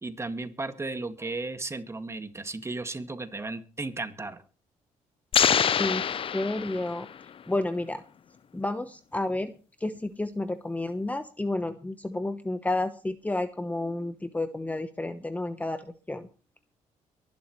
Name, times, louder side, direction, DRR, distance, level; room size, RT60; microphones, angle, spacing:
voice 1, 0.0-4.4, right 3 dB, 20° right, 8 dB, 2.0 m, -35 dB
sound 1, 5.3-7.2, left 8 dB, 45° left, 0.6 m, -25 dB
voice 2, 6.3-7.1 7.5-8.0 8.5-9.5 9.8-16.3, left 2 dB, 10° left, 10 dB, 1.0 m, -31 dB
23.5 x 11.5 x 3.2 m, 0.36 s
cardioid pair, 100°, 13 cm